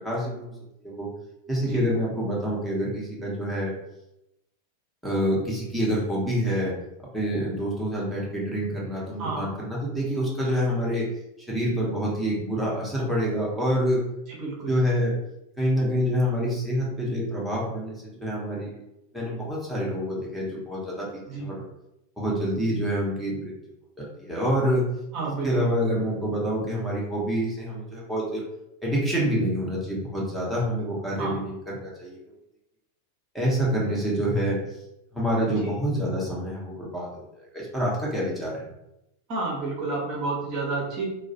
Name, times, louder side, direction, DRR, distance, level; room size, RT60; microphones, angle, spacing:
voice 1, 0.0-0.5 0.8-1.1 1.5-3.7 5.0-6.7 7.1-11.1 11.5-14.0 14.7-15.1 15.6-18.8 19.1-21.6 22.2-23.5 24.0-24.9 25.4-28.4 28.8-32.2 33.3-34.6 35.1-38.7, equal, ahead, -6 dB, 0.8 m, -27 dB
voice 2, 14.3-14.7 21.3-21.5 25.1-25.7 31.2-31.4 35.6-35.8 39.3-41.1, right 3 dB, 40° right, -4 dB, 0.7 m, -30 dB
2.3 x 2.0 x 2.7 m, 0.87 s
figure-of-eight pair, 90°, 0 cm